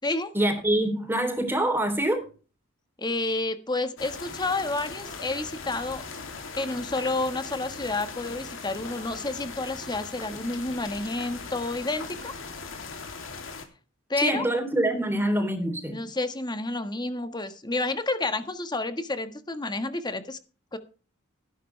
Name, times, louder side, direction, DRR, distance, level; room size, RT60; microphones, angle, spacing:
voice 1, 0.3-2.3 14.2-16.0, right 1 dB, 10° right, 3.4 m, -25 dB
voice 2, 3.0-6.0 6.6-12.3 14.1-14.4 15.9-20.4 20.7-20.8, left 2 dB, 20° left, 1.5 m, -30 dB
sound 1, 4.0-13.6, left 4 dB, 70° left, 2.9 m, -39 dB
15.0 x 12.0 x 3.3 m
head